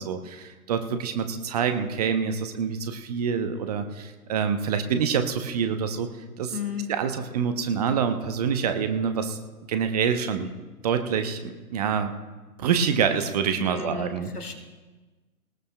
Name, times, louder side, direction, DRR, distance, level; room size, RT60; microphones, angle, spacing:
voice 1, 0.0-6.1 6.4-6.6 6.9-9.4 9.7-10.5 10.8-12.1 12.6-14.3, right 7 dB, 25° right, 8 dB, 0.7 m, -26 dB
voice 2, 6.5-6.9 13.5-14.6, left 8 dB, 85° left, 4 dB, 1.8 m, -33 dB
19.5 x 19.0 x 2.2 m, 1.3 s
figure-of-eight pair, 130°, 45 cm